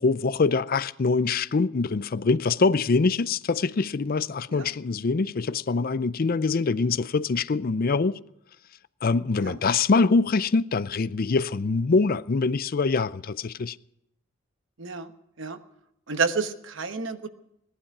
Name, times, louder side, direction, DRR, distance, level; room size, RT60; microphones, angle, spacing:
voice 1, 0.0-8.2 9.0-13.8, left 4 dB, 45° left, 0.5 m, -24 dB
voice 2, 14.8-15.1 15.4-15.6 16.1-17.3, right 5 dB, 70° right, 1.2 m, -29 dB
18.0 x 11.5 x 6.0 m
head